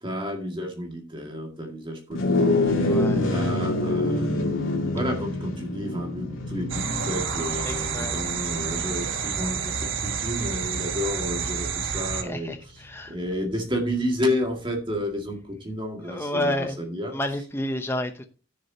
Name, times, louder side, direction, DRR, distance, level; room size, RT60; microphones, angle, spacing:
voice 1, 0.0-3.0 3.3-4.4 4.9-12.6 13.1-17.1, left 1 dB, 25° right, 2 dB, 2.0 m, -31 dB
sound 1, 2.1-11.7, left 2 dB, 85° left, 2.6 m, -27 dB
voice 2, 2.8-3.3 7.6-8.2 12.2-13.1 16.0-16.8 17.1-18.2, left 1 dB, 10° left, 6 dB, 0.8 m, -30 dB
sound 2, 6.7-12.2, right 6 dB, 75° right, 1.2 m, -29 dB
15.0 x 6.5 x 2.8 m, 0.36 s
head